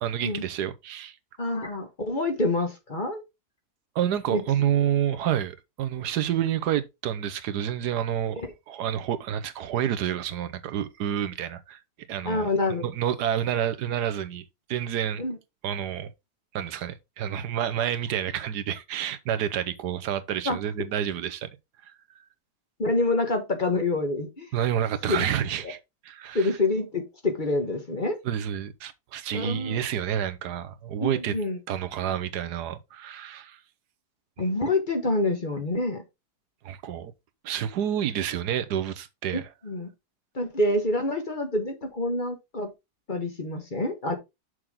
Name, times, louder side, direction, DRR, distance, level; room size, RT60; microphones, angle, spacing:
voice 1, 0.0-1.2 3.9-11.8 12.1-12.5 12.8-14.4 14.7-15.2 15.6-16.1 16.5-21.5 21.9-22.0 24.5-25.8 26.0-26.5 28.2-31.4 31.7-33.6 36.6-37.1 37.4-39.5, right 10 dB, 85° right, 1.4 m, -29 dB
voice 2, 1.4-3.2 4.3-4.4 8.4-8.5 12.2-12.8 15.2-15.4 20.4-20.6 22.8-24.5 25.1-25.2 26.3-28.2 29.3-29.8 31.0-31.6 34.4-36.0 39.3-39.9 40.3-42.7 43.1-44.1, left 2 dB, 30° left, 1.4 m, -27 dB
6.4 x 6.2 x 3.6 m
omnidirectional pair, 1.7 m